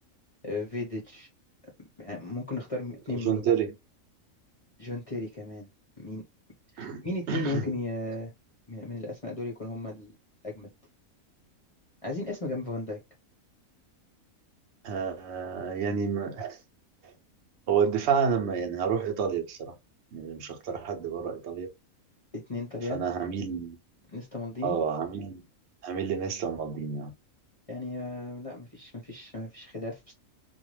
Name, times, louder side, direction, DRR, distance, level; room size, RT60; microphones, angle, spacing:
voice 1, 0.4-1.3 2.0-3.5 4.8-5.7 6.0-6.2 6.7-8.3 8.7-10.1 10.4-10.7 12.0-13.0 22.3-23.0 24.1-24.8 27.7-30.1, left 2 dB, 40° left, 0.5 m, -35 dB
voice 2, 3.1-3.7 6.8-7.7 14.8-16.6 17.7-19.7 20.1-21.7 22.9-23.8 24.6-25.4 25.8-27.1, right 6 dB, 60° right, 0.9 m, -29 dB
2.5 x 2.2 x 3.0 m
omnidirectional pair, 1.5 m